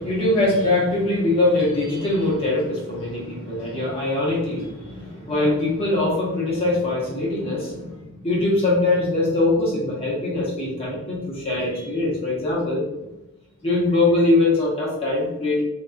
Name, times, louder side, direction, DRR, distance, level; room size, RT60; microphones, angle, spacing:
voice 1, 0.0-12.9 13.6-15.6, left 2 dB, 25° left, -5 dB, 1.1 m, -22 dB
3.3 x 3.0 x 2.4 m, 0.94 s
head